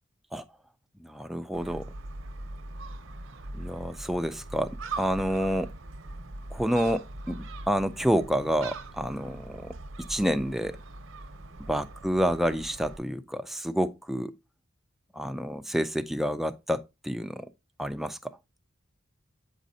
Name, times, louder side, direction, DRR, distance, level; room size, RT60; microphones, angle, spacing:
voice 1, 1.0-1.9 3.5-5.7 6.5-10.8 11.7-14.3 15.1-17.5 17.8-18.3, equal, ahead, 0.3 m, -29 dB
Gull seagull, 1.5-13.0, right 2 dB, 70° right, 0.8 m, -41 dB
8.1 x 5.1 x 2.7 m
head